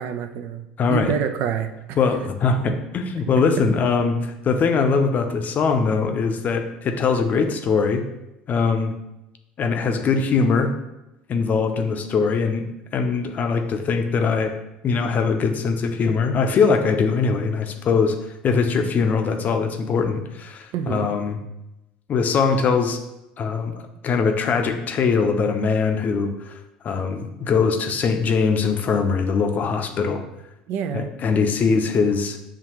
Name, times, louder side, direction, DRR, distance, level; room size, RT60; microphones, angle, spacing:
voice 1, 0.0-2.0 20.7-21.1 30.7-31.1, right 8 dB, 60° right, 8 dB, 0.4 m, -27 dB
voice 2, 0.8-1.1 2.0-8.0 8.5-8.9 9.6-10.7 11.3-12.6 12.9-14.6 14.8-18.2 18.4-21.4 22.1-23.0 23.4-23.7 24.0-30.2 30.9-32.4, left 5 dB, 40° left, 6 dB, 0.6 m, -21 dB
7.1 x 2.4 x 2.9 m, 0.92 s
hypercardioid pair, 70°, 4 cm